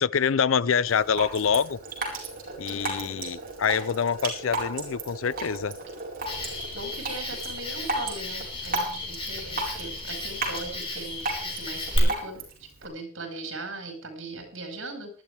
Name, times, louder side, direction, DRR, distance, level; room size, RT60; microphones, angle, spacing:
voice 1, 0.0-1.8 2.6-5.8, left 6 dB, 75° left, 0.5 m, -25 dB
Drip, 0.9-12.9, right 2 dB, 45° right, 4.5 m, -35 dB
voice 2, 2.7-3.3 6.7-12.4 12.8-15.1, right 2 dB, 65° right, 5.2 m, -39 dB
Cricket, 6.3-12.0, left 2 dB, 25° left, 4.1 m, -34 dB
19.5 x 12.0 x 3.4 m
head